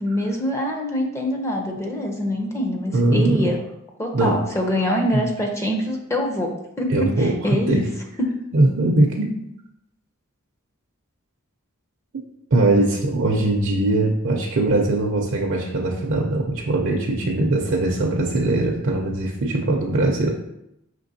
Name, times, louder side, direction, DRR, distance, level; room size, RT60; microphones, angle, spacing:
voice 1, 0.0-3.6 4.0-6.5 6.8-7.9, left 1 dB, 15° left, 1 dB, 0.5 m, -24 dB
voice 2, 2.9-3.5 4.1-4.3 5.1-5.2 6.9-7.4 7.7-7.8 8.5-9.3 12.5-20.3, right 2 dB, 60° right, -1 dB, 0.5 m, -21 dB
5.1 x 3.1 x 2.6 m, 0.82 s
head